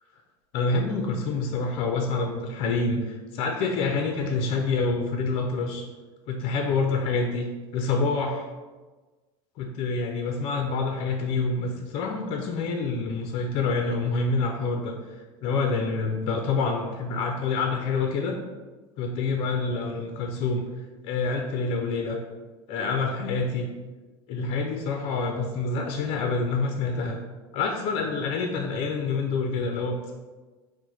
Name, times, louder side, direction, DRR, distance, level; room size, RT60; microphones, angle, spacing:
voice 1, 0.5-5.9 6.3-7.5 7.7-8.5 9.6-18.4 19.0-20.6 21.0-22.2 22.7-23.7 24.3-27.2 27.5-30.1, left 4 dB, 50° left, 2 dB, 0.5 m, -27 dB
4.7 x 2.1 x 4.0 m, 1.3 s
supercardioid pair, 150°, 12 cm